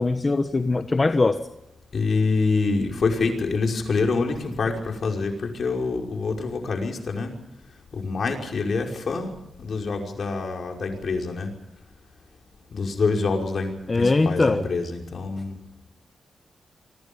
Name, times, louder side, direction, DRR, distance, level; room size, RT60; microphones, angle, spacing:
voice 1, 0.0-1.4 13.9-14.7, left 3 dB, 30° left, 8 dB, 1.3 m, -21 dB
voice 2, 1.9-7.3 7.9-9.3 9.6-11.5 12.7-15.6, left 4 dB, 60° left, 2 dB, 5.6 m, -26 dB
26.0 x 24.5 x 5.5 m, 0.83 s
cardioid pair, 85°, 0 cm